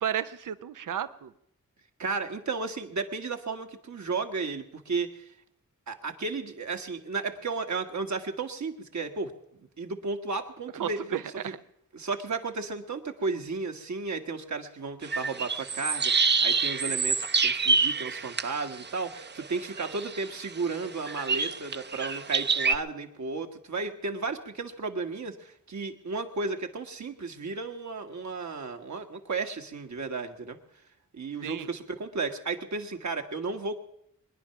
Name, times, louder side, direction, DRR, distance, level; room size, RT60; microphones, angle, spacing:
voice 1, 0.0-1.3 10.8-11.6 31.4-31.7, right 9 dB, 90° right, 13 dB, 0.6 m, -32 dB
voice 2, 2.0-5.2 5.9-9.3 9.8-11.0 11.9-30.6 31.1-33.8, right 4 dB, 65° right, 4 dB, 1.6 m, -34 dB
sound 1, 15.0-22.8, right 4 dB, 35° right, 0.6 m, -27 dB
23.0 x 10.5 x 5.8 m, 0.73 s
wide cardioid pair, 70°, 31 cm